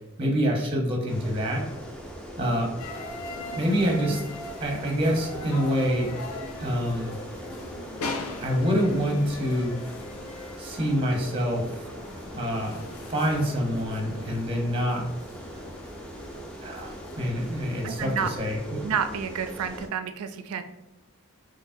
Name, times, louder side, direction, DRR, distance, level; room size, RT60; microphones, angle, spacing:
voice 1, 0.2-1.6 2.4-2.7 3.6-4.2 4.6-6.1 6.6-7.1 8.4-9.8 10.6-11.7 12.3-12.8 13.1-15.1 16.6-18.8, equal, 25° right, 0 dB, 0.7 m, -26 dB
sound 1, 1.1-19.9, equal, 5° left, 0.4 m, -41 dB
sound 2, 2.8-17.8, left 2 dB, 75° left, 0.5 m, -40 dB
voice 2, 17.8-18.3 18.8-20.6, right 7 dB, 80° right, 9 dB, 0.4 m, -30 dB
4.7 x 3.0 x 2.6 m, 0.95 s
head